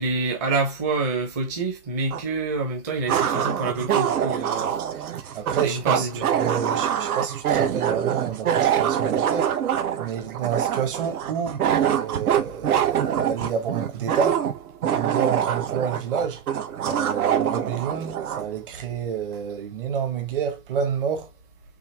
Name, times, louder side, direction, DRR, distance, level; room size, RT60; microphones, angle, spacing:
voice 1, 0.0-4.7 5.6-6.3, right 3 dB, 10° right, 0.7 m, -27 dB
sound 1, 2.1-2.2 3.1-18.5, right 9 dB, 80° right, 1.2 m, -24 dB
voice 2, 5.3-6.1 6.4-9.5 10.0-14.4 14.8-16.4 16.8-21.3, right 7 dB, 40° right, 1.3 m, -29 dB
5.6 x 2.9 x 2.9 m
hypercardioid pair, 180°, 43 cm